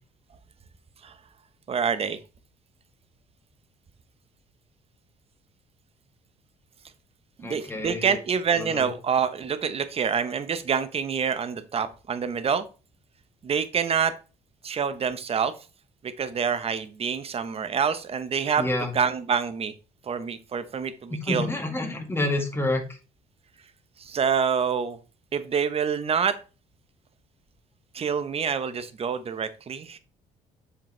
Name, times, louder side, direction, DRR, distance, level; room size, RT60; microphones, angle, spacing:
voice 1, 1.7-2.2 7.4-12.6 13.4-14.1 14.6-15.5 16.0-18.6 18.9-19.7 20.1-21.5 24.0-25.0 25.3-26.4 27.9-30.0, right 6 dB, 40° right, 12 dB, 0.9 m, -26 dB
voice 2, 7.4-8.2 8.6-8.9 18.6-18.9 21.1-23.0, left 2 dB, 15° left, 3 dB, 1.9 m, -28 dB
7.2 x 5.1 x 3.3 m, 0.33 s
supercardioid pair, 80°, 15 cm